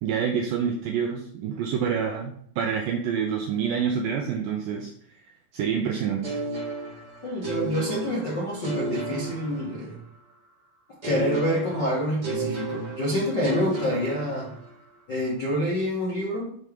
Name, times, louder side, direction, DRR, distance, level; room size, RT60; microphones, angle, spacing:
voice 1, 0.0-4.9 5.5-6.4, right 7 dB, 90° right, 2 dB, 2.0 m, -27 dB
sound 1, 6.2-10.2 11.0-14.9, right 2 dB, 50° right, 1.3 m, -33 dB
voice 2, 7.2-10.0 11.0-14.5 15.1-16.5, equal, 70° left, -6 dB, 1.0 m, -27 dB
6.7 x 3.2 x 5.2 m, 0.62 s
omnidirectional pair, 4.8 m